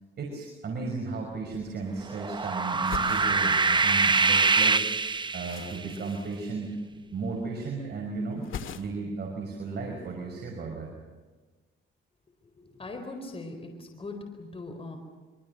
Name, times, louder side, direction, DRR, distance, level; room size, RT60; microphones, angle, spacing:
voice 1, 0.2-4.9 5.3-8.5 8.8-10.9, right 3 dB, 55° right, 0 dB, 5.7 m, -35 dB
sound 1, 1.2-1.3 1.5-2.4 2.7-4.3 4.6-7.1 7.4-7.9 8.2-9.2 9.5-10.3, left 8 dB, 80° left, 2.0 m, -43 dB
sound 2, 2.1-5.8, right 4 dB, 25° right, 0.7 m, -24 dB
voice 2, 12.6-15.0, left 2 dB, 30° left, 4 dB, 4.3 m, -40 dB
26.0 x 25.0 x 6.7 m, 1.3 s
cardioid pair, 100°, 20 cm